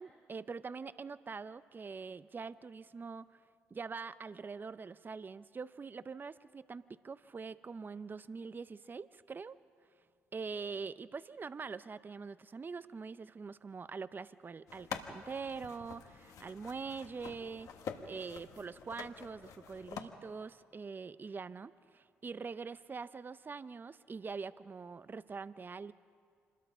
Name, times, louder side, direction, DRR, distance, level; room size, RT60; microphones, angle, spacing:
voice 1, 0.0-3.4 3.7-9.6 10.3-17.7 18.1-25.9, right 5 dB, 35° right, 15 dB, 0.6 m, -44 dB
sound 1, 14.7-20.0, left 7 dB, 70° left, 1.5 m, -47 dB
26.0 x 21.0 x 5.6 m, 2.2 s
hypercardioid pair, 50°, 6 cm